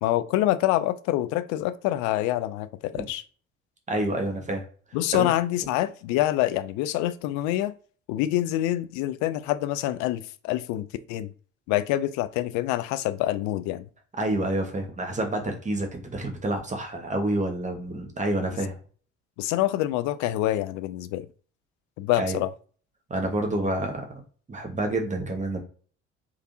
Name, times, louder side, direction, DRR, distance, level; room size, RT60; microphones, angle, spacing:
voice 1, 0.0-3.2 4.9-7.7 8.1-11.3 11.7-13.9 19.4-21.3 22.0-22.5, left 14 dB, 50° left, 0.5 m, -26 dB
voice 2, 3.9-4.6 5.1-5.3 14.1-18.8 22.2-22.4 23.1-24.0 24.5-25.6, right 1 dB, 20° right, 1.2 m, -28 dB
3.5 x 3.2 x 2.7 m
figure-of-eight pair, 55°, 37 cm